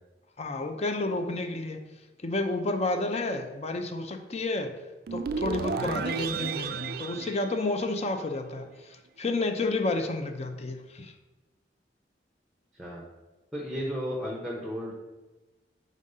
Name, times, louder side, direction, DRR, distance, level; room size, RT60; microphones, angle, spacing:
voice 1, 0.4-1.8 2.2-4.8 5.1-11.1, left 2 dB, 35° left, 6 dB, 0.6 m, -30 dB
sound 1, 5.1-8.3, right 5 dB, 55° right, 0.3 m, -33 dB
voice 2, 13.5-14.9, equal, ahead, -2 dB, 0.8 m, -34 dB
5.2 x 3.7 x 5.4 m, 1.1 s
head